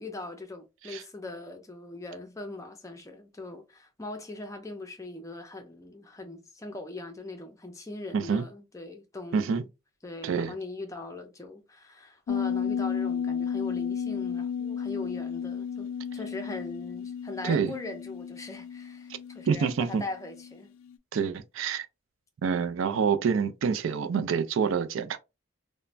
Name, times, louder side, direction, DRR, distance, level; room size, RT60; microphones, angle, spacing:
voice 1, 0.0-9.7 10.0-20.7, left 2 dB, 15° left, 0.4 m, -40 dB
voice 2, 8.1-8.4 9.3-9.6 10.2-10.5 17.4-17.7 19.5-20.0 21.1-21.9 22.4-25.2, right 6 dB, 75° right, 0.4 m, -27 dB
sound 1, 12.3-20.6 20.9-21.0, left 7 dB, 90° left, 0.3 m, -33 dB
3.1 x 2.1 x 2.4 m
head